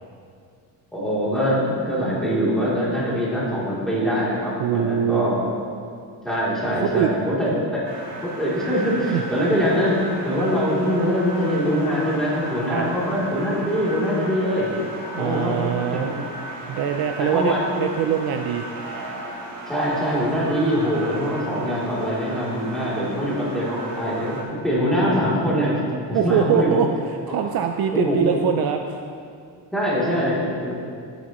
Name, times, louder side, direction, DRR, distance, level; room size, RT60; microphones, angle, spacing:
voice 1, 0.9-5.4 6.2-7.5 8.2-9.9 10.2-14.7 15.2-16.0 17.2-17.7 19.7-24.4 24.6-25.8 26.1-26.8 27.3-27.4 27.9-28.4 29.7-30.7, equal, ahead, -9 dB, 3.1 m, -23 dB
voice 2, 4.6-5.3 6.8-7.1 9.1-9.2 12.7-12.9 15.1-16.1 16.7-18.6 26.1-29.0, right 8 dB, 55° right, 5 dB, 0.6 m, -23 dB
sound 1, 7.8-24.4, right 1 dB, 80° right, 3.0 m, -36 dB
17.0 x 8.3 x 3.1 m, 2.3 s
cardioid pair, 155°, 44 cm